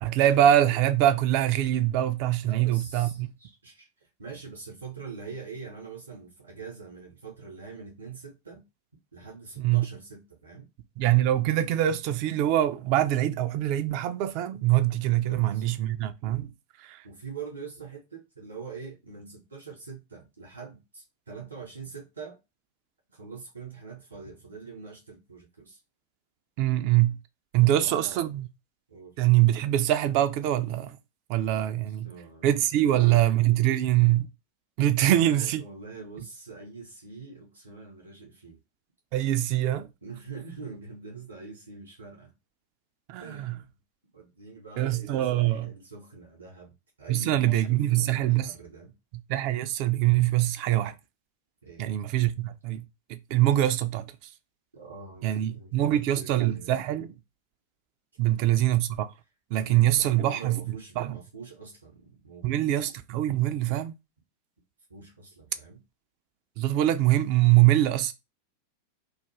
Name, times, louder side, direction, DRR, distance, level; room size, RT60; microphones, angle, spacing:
voice 1, 0.0-3.3 9.6-9.9 11.0-16.5 16.8-17.0 26.6-27.2 27.5-28.5 29.2-31.0 31.3-32.1 32.4-34.3 34.8-35.6 39.1-39.9 43.1-43.6 44.8-45.7 47.1-48.5 49.3-50.9 51.8-52.8 53.1-54.1 55.2-57.1 58.2-59.1 59.5-60.6 61.0-61.2 62.4-63.9 66.6-68.1, right 13 dB, 45° right, 0.3 m, -24 dB
voice 2, 2.4-8.6 9.1-10.7 15.2-15.7 17.0-22.4 23.1-25.8 27.6-28.2 28.9-29.2 31.7-33.2 34.9-38.6 40.0-42.3 43.2-43.8 44.1-48.9 51.6-51.8 54.7-56.7 58.2-58.7 59.6-62.5 64.9-65.8, right 4 dB, 70° right, 0.8 m, -44 dB
2.4 x 2.2 x 3.0 m
figure-of-eight pair, 90°, 0 cm